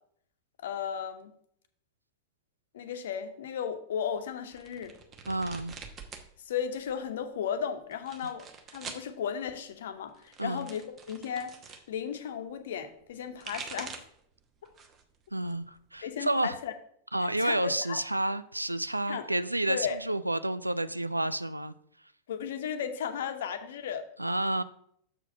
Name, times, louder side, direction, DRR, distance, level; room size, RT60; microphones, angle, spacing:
voice 1, 0.6-1.3 2.7-4.9 6.4-8.4 8.7-10.8 11.1-11.6 11.9-14.0 16.0-16.7 17.2-18.0 19.1-19.3 19.7-20.0 22.3-24.0, left 8 dB, 60° left, 8 dB, 0.9 m, -35 dB
sound 1, 4.5-6.3 6.6-7.2 7.9-9.1 10.1-11.8 13.1-14.2 14.7-15.1 15.5-16.5, right 5 dB, 25° right, 1.0 m, -45 dB
voice 2, 5.3-5.7 10.4-10.7 15.3-16.6 17.1-21.7 24.2-24.6, right 1 dB, 85° right, 14 dB, 0.4 m, -30 dB
6.8 x 4.8 x 5.5 m, 0.67 s
figure-of-eight pair, 90°, 0 cm